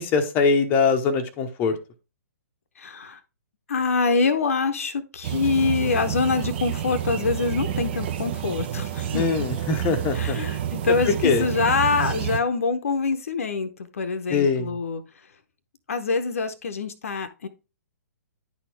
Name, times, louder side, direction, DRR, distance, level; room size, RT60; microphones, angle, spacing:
voice 1, 0.0-1.8 9.1-10.4 11.2-11.5 14.3-14.7, left 5 dB, 20° left, 0.8 m, -22 dB
voice 2, 2.8-3.2 3.7-9.5 10.1-15.0 15.9-17.5, left 4 dB, 55° left, 0.8 m, -25 dB
sound 1, 5.2-12.4, right 10 dB, 40° right, 0.7 m, -29 dB
10.5 x 4.3 x 3.3 m
figure-of-eight pair, 120°, 9 cm